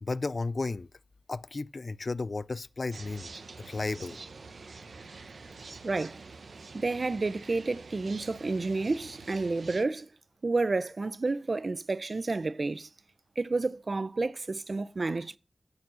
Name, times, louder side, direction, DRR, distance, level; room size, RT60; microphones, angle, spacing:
voice 1, 0.0-0.9 1.3-3.3 3.6-4.2, left 3 dB, 50° left, 0.3 m, -33 dB
sound 1, 2.9-9.9, right 4 dB, 75° right, 1.0 m, -47 dB
voice 2, 5.8-6.2 6.7-10.1 10.4-12.9 13.4-15.4, right 3 dB, 55° right, 0.5 m, -30 dB
9.5 x 4.7 x 6.3 m
wide cardioid pair, 60°, 0 cm